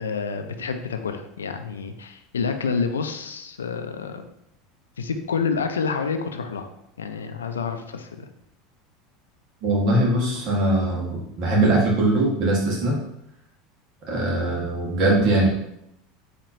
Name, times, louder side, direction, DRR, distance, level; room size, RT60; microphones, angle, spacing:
voice 1, 0.0-4.2 5.0-6.7 7.0-8.3, left 5 dB, 90° left, 7 dB, 0.3 m, -28 dB
voice 2, 9.6-13.0 14.1-15.5, right 1 dB, 55° right, -2 dB, 1.4 m, -21 dB
4.3 x 2.9 x 2.7 m, 0.79 s
hypercardioid pair, 85°, 0 cm